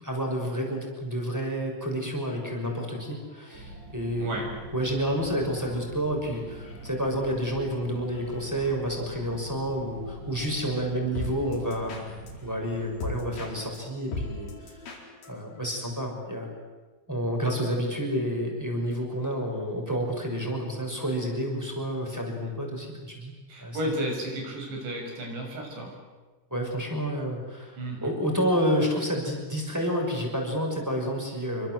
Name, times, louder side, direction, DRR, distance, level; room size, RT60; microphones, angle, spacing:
voice 1, 0.0-4.4 4.7-12.2 12.4-14.5 15.3-16.5 17.1-23.3 23.6-23.8 26.5-31.7, equal, 5° right, 0 dB, 5.9 m, -29 dB
sound 1, 2.2-15.9, left 2 dB, 65° left, 6.4 m, -43 dB
sound 2, 3.5-12.8, right 1 dB, 45° right, 9.2 m, -43 dB
voice 2, 23.5-25.9 27.8-28.1, right 1 dB, 85° right, 1 dB, 9.0 m, -33 dB
28.0 x 24.5 x 7.9 m, 1.3 s
omnidirectional pair, 4.9 m